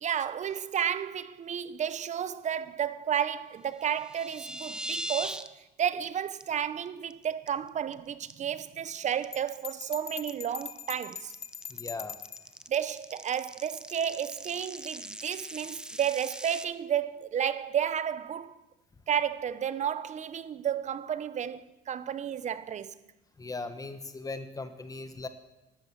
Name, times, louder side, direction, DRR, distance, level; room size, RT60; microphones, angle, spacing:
voice 1, 0.0-11.3 12.7-18.6 19.1-22.9, right 9 dB, 45° right, 0.8 m, -32 dB
sound 1, 3.8-5.5 5.8-6.0 6.4-6.5 6.9-7.1 7.5-7.9 8.3-16.6, equal, 5° right, 0.7 m, -41 dB
Bell, 9.3-12.5, left 8 dB, 40° left, 0.9 m, -42 dB
voice 2, 11.7-12.2 23.4-25.3, left 3 dB, 20° left, 1.3 m, -38 dB
12.5 x 12.5 x 7.4 m
cardioid pair, 110°, 17 cm